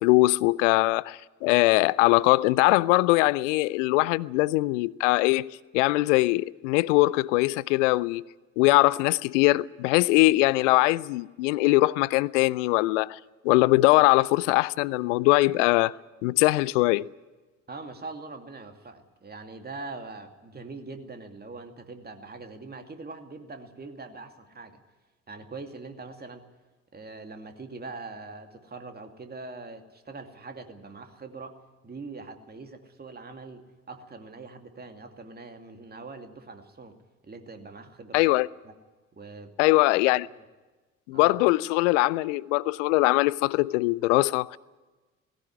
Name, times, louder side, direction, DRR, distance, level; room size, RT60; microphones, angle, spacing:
voice 1, 0.0-8.2 8.6-13.2 13.4-15.9 16.2-17.1 38.1-38.5 39.6-40.3 41.1-44.6, left 20 dB, 65° left, 0.6 m, -22 dB
voice 2, 17.7-24.8 25.3-26.4 26.9-31.6 31.8-37.0 37.2-38.3 38.6-38.7 39.1-39.5 40.3-40.4 41.1-41.3, right 3 dB, 25° right, 2.5 m, -42 dB
18.5 x 16.5 x 9.8 m
figure-of-eight pair, 50°, 40 cm